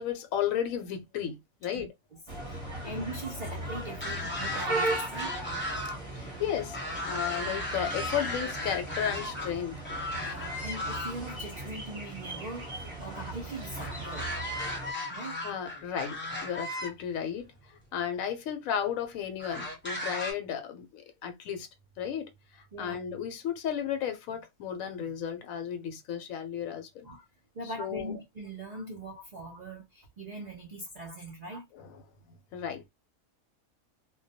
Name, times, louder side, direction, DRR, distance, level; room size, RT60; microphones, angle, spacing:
voice 1, 0.0-1.9 6.1-6.8 7.1-9.8 15.4-16.2 16.4-17.5 17.9-21.7 22.0-27.1 27.6-28.2 31.7-32.0 32.5-32.9, left 9 dB, 75° left, 1.0 m, -34 dB
voice 2, 1.6-2.2 2.5-5.3 10.1-14.3 15.1-15.4 22.7-23.0 27.0-27.3 27.5-31.7, right 1 dB, 65° right, 0.4 m, -41 dB
sound 1, 2.3-14.9, right 2 dB, 30° right, 0.7 m, -37 dB
sound 2, 3.9-6.0 6.3-9.5 9.8-11.4 13.8-16.9 17.8-17.9 19.4-20.3, left 1 dB, 15° left, 0.4 m, -36 dB
2.2 x 2.1 x 2.6 m
omnidirectional pair, 1.5 m